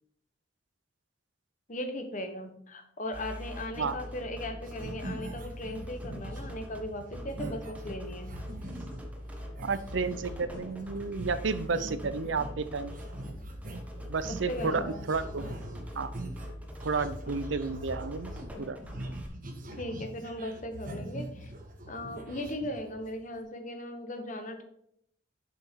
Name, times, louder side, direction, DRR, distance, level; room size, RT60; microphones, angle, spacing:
voice 1, 1.7-8.4 14.2-15.0 17.3-17.4 19.8-21.5 21.9-24.6, left 1 dB, 45° left, 6 dB, 1.1 m, -38 dB
sound 1, 3.1-19.3, equal, 10° right, 1.1 m, -43 dB
sound 2, 3.5-4.3 4.6-9.1 9.6-23.2, right 1 dB, 50° right, 1.4 m, -43 dB
voice 2, 9.6-12.9 14.1-15.4 16.0-16.1 16.8-18.3 18.6-18.8, right 4 dB, 90° right, 13 dB, 0.6 m, -31 dB
7.0 x 5.8 x 4.6 m, 0.72 s
head